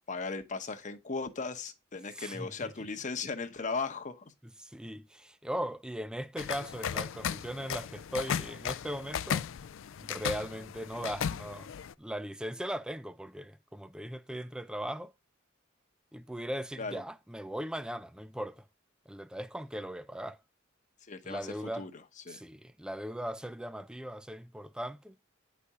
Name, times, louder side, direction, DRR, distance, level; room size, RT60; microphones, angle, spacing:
voice 1, 0.1-4.2 16.8-17.0 21.1-21.4 21.8-21.9 22.3-22.4, left 4 dB, 40° left, 0.9 m, -37 dB
voice 2, 2.1-2.9 4.4-9.4 10.0-11.7 12.0-15.1 16.1-18.6 19.1-20.4 21.2-21.9 22.3-25.1, equal, 5° right, 0.4 m, -39 dB
sound 1, 6.4-11.9, left 8 dB, 70° left, 0.4 m, -36 dB
9.7 x 4.2 x 4.8 m
head